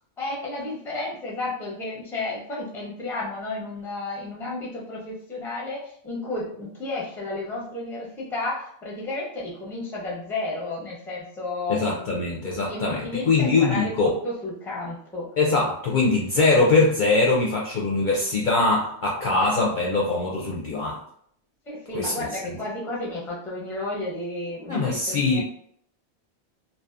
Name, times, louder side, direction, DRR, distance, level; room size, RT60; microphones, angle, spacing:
voice 1, 0.2-12.3 12.7-15.3 21.7-25.4, left 2 dB, 5° left, -4 dB, 0.5 m, -32 dB
voice 2, 11.7-14.1 15.4-21.0 21.9-22.1 24.7-25.4, left 3 dB, 55° left, -3 dB, 0.6 m, -22 dB
2.7 x 2.2 x 2.4 m, 0.65 s
omnidirectional pair, 1.2 m